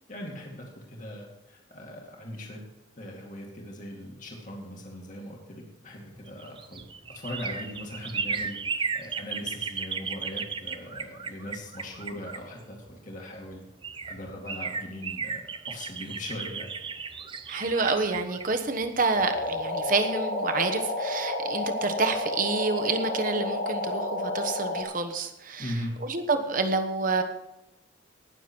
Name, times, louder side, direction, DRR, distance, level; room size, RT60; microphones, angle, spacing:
voice 1, 0.1-2.6 3.0-13.6 14.1-16.7 25.6-25.9, left 1 dB, 40° left, -1 dB, 2.4 m, -40 dB
sound 1, 6.2-13.0 13.5-13.6 13.8-19.6 19.9-20.0, right 5 dB, 25° right, 0.6 m, -35 dB
voice 2, 17.5-27.2, right 3 dB, 45° right, 6 dB, 1.2 m, -28 dB
sound 2, 19.1-24.8, left 2 dB, 60° left, 2.2 m, -30 dB
19.0 x 7.1 x 4.6 m, 0.92 s
head